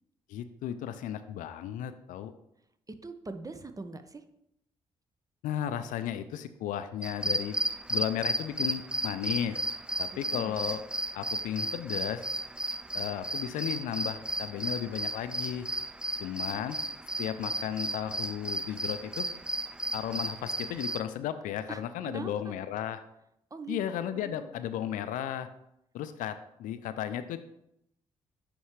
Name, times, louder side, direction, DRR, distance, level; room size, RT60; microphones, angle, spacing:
voice 1, 0.3-2.3 5.4-7.6 7.9-9.6 10.0-10.8 11.1-12.2 12.9-15.7 16.2-16.8 17.2-19.3 19.9-23.0 23.7-25.5 25.9-27.4, left 10 dB, 75° left, 11 dB, 0.4 m, -34 dB
voice 2, 2.9-4.2 10.1-10.6 21.7-22.5 23.5-24.5, right 3 dB, 25° right, 9 dB, 0.8 m, -42 dB
sound 1, 7.0-21.0, right 1 dB, 5° right, 0.4 m, -34 dB
9.3 x 3.4 x 3.2 m, 0.79 s
hypercardioid pair, 40°, 14 cm